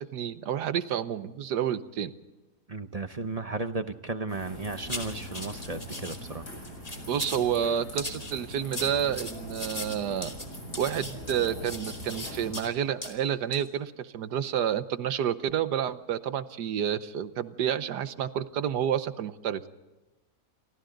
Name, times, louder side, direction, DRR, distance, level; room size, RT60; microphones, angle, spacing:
voice 1, 0.0-2.1 7.1-10.3 10.8-19.6, right 9 dB, 80° right, 12 dB, 1.5 m, -29 dB
voice 2, 2.7-6.5, right 3 dB, 30° right, 9 dB, 0.7 m, -34 dB
sound 1, 4.3-12.5, equal, 75° left, 8.8 m, -42 dB
sound 2, 4.9-6.2 6.6-7.5 8.0-12.7 13.0-13.1 13.5-13.7, left 2 dB, 20° left, 2.8 m, -39 dB
29.0 x 24.0 x 3.9 m, 1.1 s
omnidirectional pair, 1.7 m